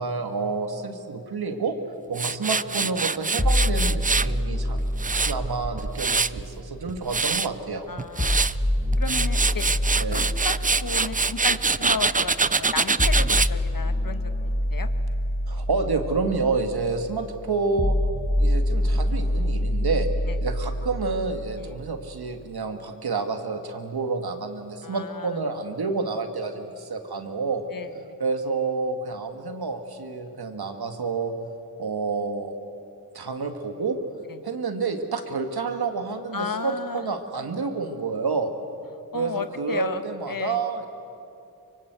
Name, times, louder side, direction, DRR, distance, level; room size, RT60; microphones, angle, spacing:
voice 1, 0.0-1.8 2.1-4.8 5.1-7.9 10.0-10.3 15.5-18.0 18.4-20.1 20.4-27.6 28.2-31.3 31.8-32.6 33.1-34.0 34.4-38.5 39.1-40.9, right 4 dB, 80° right, 6 dB, 2.1 m, -29 dB
Tools, 2.1-4.3 4.8-6.4 6.9-7.5 8.0-8.5 8.9-13.5, right 4 dB, 20° right, 0.5 m, -24 dB
sound 1, 3.4-7.4 8.2-22.2, left 1 dB, 20° left, 1.5 m, -27 dB
voice 2, 7.9-8.5 9.0-9.7 10.1-10.5 10.8-14.3 14.7-14.9 20.3-20.4 21.6-21.8 24.8-25.3 27.7-28.1 34.3-34.4 36.3-37.0 39.1-40.0 40.3-40.6, left 5 dB, 60° left, 9 dB, 1.5 m, -33 dB
24.5 x 24.0 x 8.2 m, 2.7 s
cardioid pair, 50°, 37 cm